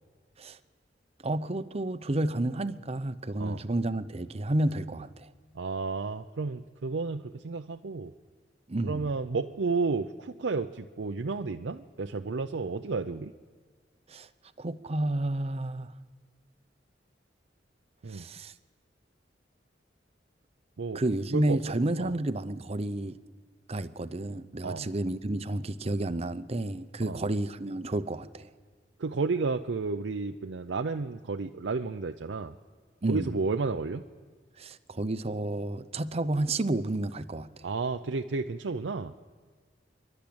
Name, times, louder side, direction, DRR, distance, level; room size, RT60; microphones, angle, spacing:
voice 1, 1.2-5.3 8.7-9.1 14.1-14.3 14.6-15.9 18.1-18.5 20.9-23.2 23.7-28.5 33.0-33.4 34.6-37.5, right 1 dB, 35° right, 0.7 m, -31 dB
voice 2, 5.5-8.1 8.8-13.3 18.0-18.2 20.8-21.0 21.3-21.6 22.0-22.1 24.6-24.9 27.0-27.2 29.0-32.6 33.1-34.0 37.6-39.2, right 4 dB, 85° right, 0.6 m, -32 dB
27.5 x 12.0 x 8.7 m
head